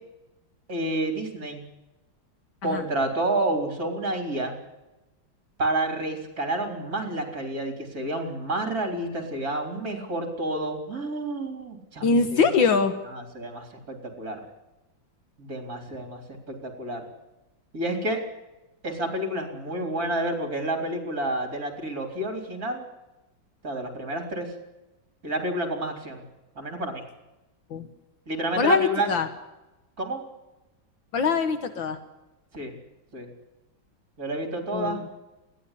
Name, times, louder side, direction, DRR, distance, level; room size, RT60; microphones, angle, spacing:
voice 1, 0.7-1.6 2.6-4.5 5.6-12.4 13.1-14.4 15.4-16.2 16.5-17.0 17.7-18.2 18.8-22.8 23.6-24.5 25.2-26.2 26.6-27.0 28.3-29.1 30.0-30.2 32.5-32.8 33.1-33.3 34.2-35.0, right 1 dB, 45° right, 4 dB, 4.1 m, -29 dB
voice 2, 12.0-12.9 27.7-27.9 28.6-29.3 31.1-32.0 34.7-35.1, left 5 dB, 75° left, 8 dB, 2.0 m, -23 dB
20.5 x 16.0 x 10.0 m, 1.0 s
omnidirectional pair, 2.1 m